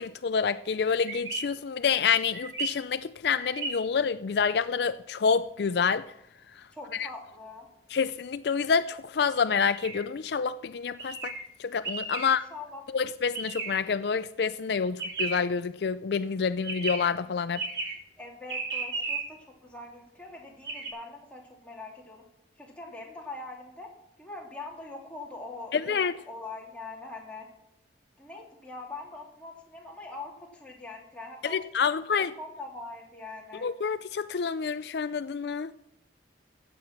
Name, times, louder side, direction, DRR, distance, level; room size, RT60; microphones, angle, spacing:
voice 1, 0.0-6.0 6.9-7.1 7.9-11.3 11.6-12.4 12.9-17.6 25.7-26.1 31.4-32.3 33.6-35.7, left 6 dB, 60° left, 13 dB, 0.4 m, -28 dB
sound 1, 1.0-1.4 2.3-2.7 3.4-3.7 9.6-10.0 11.0-11.4 11.8-12.3 13.3-13.8 15.0-15.4 16.6-17.0 17.5-18.0 18.5-19.2 20.6-20.9, right 3 dB, 65° right, 3.3 m, -33 dB
voice 2, 6.7-7.7 12.2-12.8 18.2-22.2 22.6-23.9 24.2-27.5 28.2-31.6 32.2-33.6, left 3 dB, 5° left, -2 dB, 2.9 m, -43 dB
15.0 x 8.6 x 6.0 m, 0.81 s
head